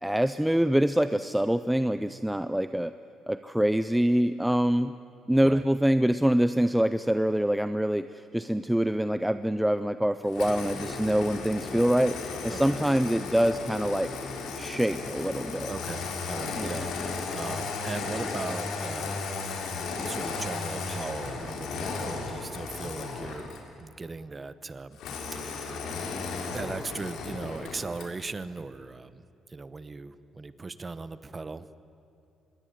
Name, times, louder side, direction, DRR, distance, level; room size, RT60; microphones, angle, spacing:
voice 1, 0.0-2.9 3.3-4.9 5.3-12.2 12.4-14.1 14.6-15.7 16.6-16.8, equal, 5° right, 11 dB, 0.5 m, -25 dB
Engine starting, 10.3-23.7 25.0-28.2, left 4 dB, 75° left, 4.0 m, -35 dB
voice 2, 12.5-12.9 15.7-19.2 20.0-23.5 23.8-25.0 25.3-25.9 26.5-29.2 29.5-31.6, right 3 dB, 20° right, 14 dB, 0.9 m, -38 dB
25.0 x 21.5 x 9.2 m, 2.9 s
cardioid pair, 165°, 0 cm